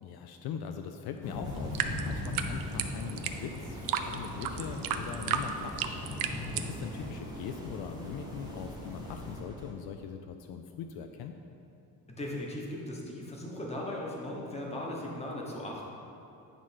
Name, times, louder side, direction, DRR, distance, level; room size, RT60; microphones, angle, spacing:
voice 1, 0.0-5.8 6.3-11.4, left 7 dB, 70° left, 5 dB, 0.5 m, -41 dB
sound 1, 1.2-9.4, left 2 dB, 50° left, 1.1 m, -40 dB
sound 2, 1.4-9.7, right 1 dB, 10° right, 0.6 m, -46 dB
sound 3, 1.6-6.7, right 9 dB, 60° right, 0.5 m, -33 dB
voice 2, 12.1-15.8, left 1 dB, 15° left, -2 dB, 1.0 m, -38 dB
9.0 x 3.2 x 5.7 m, 2.8 s
cardioid pair, 165°, 39 cm